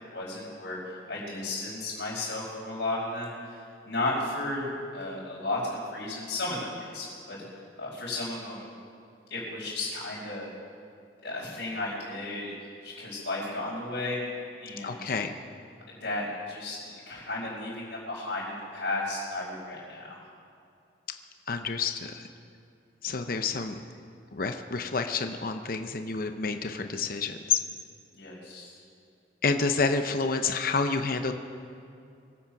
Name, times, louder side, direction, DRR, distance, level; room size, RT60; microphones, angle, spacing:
voice 1, 0.0-7.4 7.8-8.7 9.3-10.5 11.2-12.5 12.8-14.2 14.6-14.9 16.0-20.2 28.1-28.8, left 2 dB, 80° left, -11 dB, 4.8 m, -34 dB
voice 2, 14.8-15.4 21.5-22.3 23.0-23.8 24.3-27.6 29.4-31.3, left 4 dB, 55° left, 7 dB, 0.7 m, -29 dB
23.0 x 8.6 x 5.9 m, 2.5 s
head